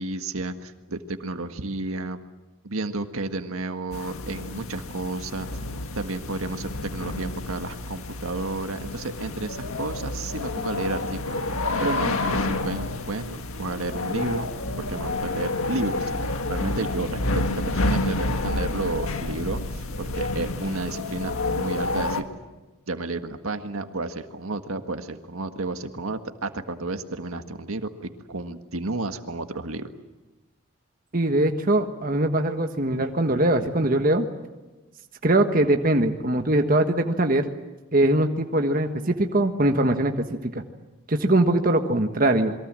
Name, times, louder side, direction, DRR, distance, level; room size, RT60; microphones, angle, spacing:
voice 1, 0.0-2.2 2.6-5.5 5.9-11.4 11.8-14.5 14.8-22.2 22.9-29.9, right 2 dB, 80° right, 7 dB, 1.7 m, -31 dB
sound 1, 3.9-22.2, left 2 dB, 80° left, 1.8 m, -29 dB
voice 2, 31.1-34.3 35.2-37.5 37.9-40.6 41.1-42.5, right 1 dB, 40° right, 5 dB, 1.4 m, -22 dB
28.0 x 22.5 x 7.6 m, 1.1 s
head